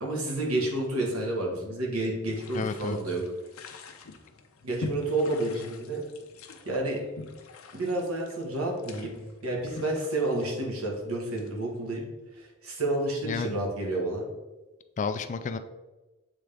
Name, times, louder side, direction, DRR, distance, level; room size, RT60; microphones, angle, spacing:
voice 1, 0.0-3.2 4.6-6.0 6.6-7.0 7.7-12.1 12.4-14.3, right 2 dB, 90° right, 0 dB, 1.5 m, -30 dB
sound 1, 2.3-11.8, left 3 dB, 75° left, 0.7 m, -44 dB
voice 2, 2.5-3.0 13.2-13.6 15.0-15.6, left 5 dB, 35° left, 10 dB, 0.3 m, -31 dB
7.7 x 3.7 x 3.4 m, 1.1 s
head